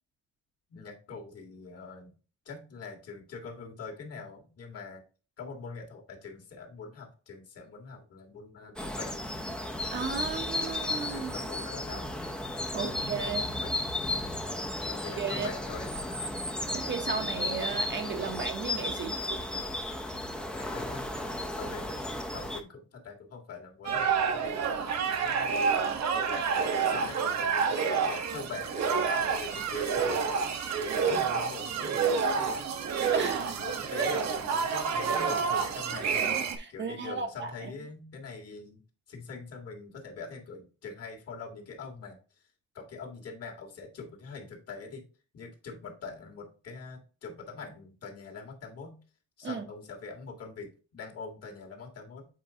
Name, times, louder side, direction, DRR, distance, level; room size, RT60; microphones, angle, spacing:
voice 1, 0.7-2.1 2.5-5.0 5.4-9.2 10.2-10.3 11.1-12.2 12.8-13.9 14.5-15.9 16.6-16.9 20.5-22.0 22.3-25.6 26.3-30.4 30.8-32.7 33.1-38.8 39.1-42.2 42.7-45.0 45.3-49.0 49.4-52.3, left 4 dB, 50° left, 2.0 m, -44 dB
sound 1, 8.8-22.6, left 1 dB, 5° left, 0.6 m, -34 dB
voice 2, 9.9-11.3 12.7-13.6 15.2-15.5 16.7-19.6 33.1-34.1 36.5-37.7 49.4-49.6, right 5 dB, 35° right, 0.9 m, -35 dB
sound 2, 23.8-36.6, right 6 dB, 60° right, 1.0 m, -28 dB
7.7 x 4.6 x 2.8 m
cardioid pair, 160°, 30 cm